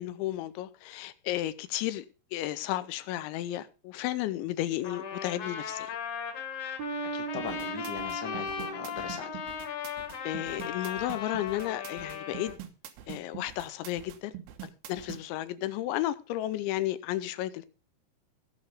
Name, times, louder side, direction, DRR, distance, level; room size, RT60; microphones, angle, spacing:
voice 1, 0.0-2.1 2.3-6.0 10.2-12.6 13.1-14.3 14.6-17.7, left 14 dB, 80° left, 3.0 m, -33 dB
Trumpet, 4.8-12.5, left 7 dB, 50° left, 2.7 m, -37 dB
sound 1, 6.8-10.1, right 10 dB, 70° right, 2.4 m, -41 dB
voice 2, 7.1-9.3, left 6 dB, 65° left, 1.0 m, -40 dB
sound 2, 7.4-15.2, right 11 dB, 90° right, 3.7 m, -44 dB
17.0 x 6.3 x 5.1 m
omnidirectional pair, 5.4 m